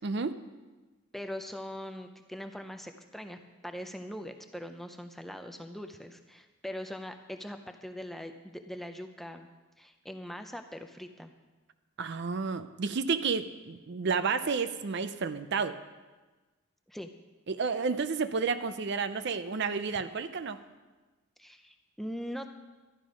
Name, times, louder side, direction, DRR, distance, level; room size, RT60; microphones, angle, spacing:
voice 1, 0.0-0.4 12.0-15.8 17.5-20.6, right 5 dB, 50° right, 11 dB, 0.5 m, -31 dB
voice 2, 1.1-9.5 9.8-11.3 16.9-17.1 21.4-22.5, equal, ahead, 6 dB, 0.5 m, -41 dB
12.0 x 11.5 x 5.1 m, 1.2 s
head